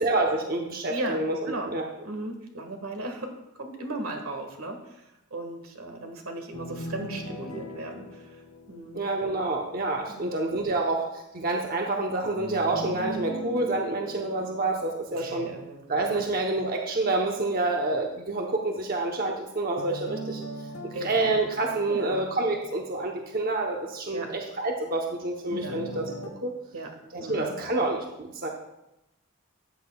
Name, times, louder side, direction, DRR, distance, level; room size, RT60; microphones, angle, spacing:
voice 1, 0.0-1.9 8.9-15.5 15.9-20.4 20.8-26.1 26.4-26.5 27.1-28.5, right 2 dB, 45° right, 1 dB, 0.8 m, -28 dB
voice 2, 0.9-1.7 2.0-8.4 8.7-9.1 10.1-10.4 15.1-16.2 20.9-21.3 21.9-22.3 24.1-24.3 25.6-25.7 26.7-26.9 27.2-27.5, right 2 dB, 90° right, 4 dB, 1.7 m, -37 dB
sound 1, 6.5-9.6 12.4-15.6 19.8-22.8 25.5-26.3, equal, 85° left, 1.2 m, -40 dB
13.5 x 8.6 x 2.3 m, 0.90 s
head